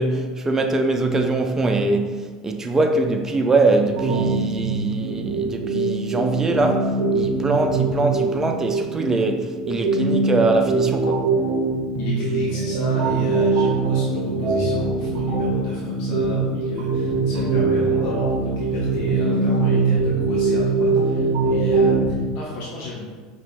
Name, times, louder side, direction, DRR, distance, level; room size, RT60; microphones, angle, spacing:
voice 1, 0.0-11.3, right 2 dB, 20° right, 0.5 m, -22 dB
sound 1, 4.0-22.1, right 3 dB, 50° right, 0.8 m, -22 dB
voice 2, 11.9-23.1, left 2 dB, 60° left, 0.8 m, -33 dB
5.3 x 2.9 x 2.4 m
hypercardioid pair, 80°, 3 cm